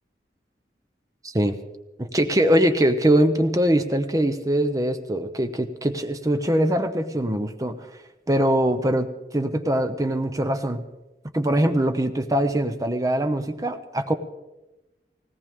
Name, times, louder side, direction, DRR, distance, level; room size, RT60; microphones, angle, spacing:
voice 1, 1.2-1.5 2.0-7.8 8.3-9.1 9.3-10.8 11.3-14.1, right 1 dB, 20° right, 7 dB, 0.8 m, -22 dB
19.0 x 17.5 x 3.7 m, 1.0 s
head